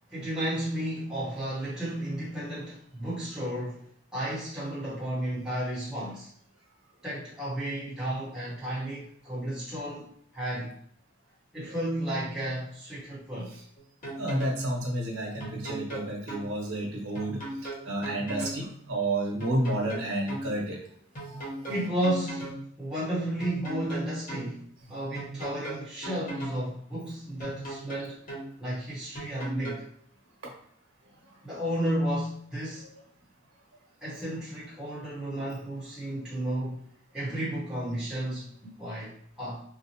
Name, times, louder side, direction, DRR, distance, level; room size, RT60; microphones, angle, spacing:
voice 1, 0.1-3.8 4.1-6.3 7.0-10.1 10.3-10.7 11.5-13.6 21.7-24.6 24.9-28.2 28.6-29.8 31.4-32.9 34.0-36.8 37.1-39.6, right 1 dB, 5° right, -10 dB, 1.0 m, -33 dB
sound 1, 13.8-14.6 15.4-16.5 17.1-18.6 19.4-20.5 21.1-22.6 23.4-24.5 25.1-26.6 27.4-28.5 29.1-29.8, right 2 dB, 40° left, 1.1 m, -38 dB
voice 2, 14.2-20.8 21.2-21.5, right 1 dB, 75° right, -1 dB, 1.2 m, -31 dB
4.3 x 2.1 x 2.8 m, 0.66 s
head